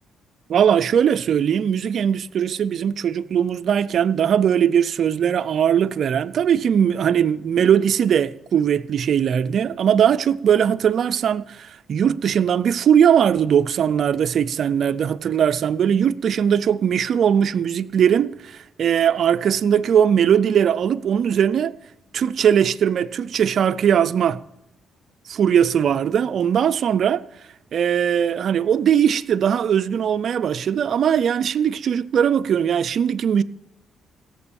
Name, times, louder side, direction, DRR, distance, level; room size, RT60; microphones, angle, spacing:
voice 1, 0.5-21.7 22.1-24.4 25.3-27.2 27.7-33.4, right 8 dB, 60° right, 0.5 m, -20 dB
16.5 x 7.6 x 7.1 m
cardioid pair, 90°, 0 cm